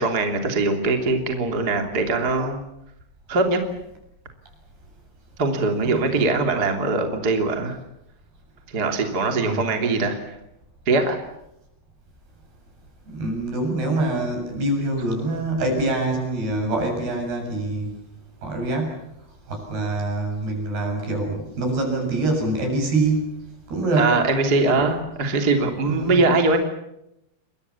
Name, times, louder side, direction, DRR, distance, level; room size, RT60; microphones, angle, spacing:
voice 1, 0.0-2.6 3.3-3.6 5.4-7.8 8.7-10.2 10.9-11.2 24.0-26.6, right 3 dB, 25° right, 4 dB, 2.9 m, -21 dB
voice 2, 13.1-17.9 18.4-18.9 19.5-23.2 23.7-24.1 24.7-24.8 25.8-26.2, right 2 dB, 65° right, 3 dB, 9.2 m, -25 dB
29.0 x 23.5 x 7.2 m, 0.83 s
omnidirectional pair, 5.1 m